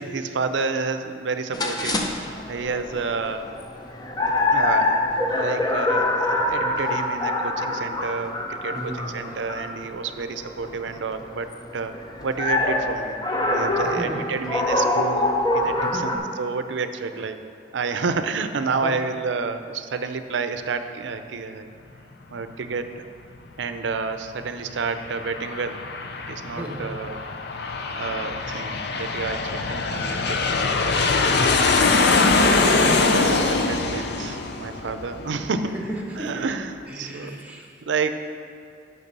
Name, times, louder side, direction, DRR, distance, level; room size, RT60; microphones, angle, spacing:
voice 1, 0.0-3.5 4.5-5.0 5.4-11.5 11.7-11.9 12.2-13.2 13.5-17.4 17.7-21.7 22.3-23.0 23.6-25.8 26.3-27.2 28.0-30.6 32.4-35.7 36.2-37.4 37.8-38.2, right 4 dB, 75° right, 9 dB, 0.5 m, -29 dB
sound 1, 1.5-16.2, left 2 dB, 20° left, 0.7 m, -25 dB
voice 2, 8.7-9.2 13.8-14.3 15.8-16.1 17.1-17.2 18.8-18.9 26.6-26.9 31.3-31.7 35.7-36.5 36.9-37.8, right 1 dB, 10° right, 0 dB, 1.1 m, -34 dB
Aircraft, 24.7-35.9, left 3 dB, 65° left, 0.6 m, -23 dB
6.8 x 6.0 x 6.7 m, 2.6 s
head